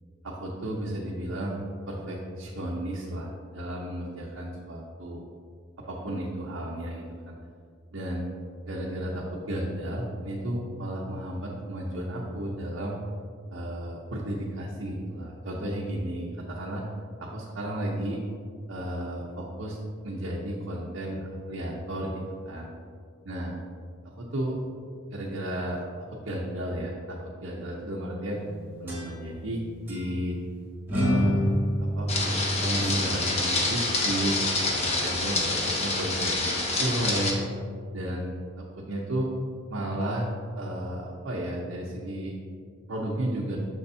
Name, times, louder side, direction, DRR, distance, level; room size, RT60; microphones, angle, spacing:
voice 1, 0.2-5.2 5.9-7.4 7.9-8.2 8.7-13.0 13.5-16.8 17.2-18.2 18.7-19.8 20.0-22.7 23.2-23.6 24.2-24.6 25.1-25.8 26.1-28.4 28.8-29.6 29.9-30.4 30.9-31.4 31.8-34.4 34.8-37.4 37.9-39.3 39.7-40.3 40.6-42.4 42.9-43.6, right 1 dB, 75° right, -4 dB, 0.8 m, -33 dB
sound 1, 28.4-29.5 29.9-30.0 30.9-33.4, equal, 10° right, 1.5 m, -28 dB
sound 2, 32.1-37.3, left 2 dB, 35° left, 0.9 m, -27 dB
6.8 x 6.4 x 2.7 m, 2.2 s
head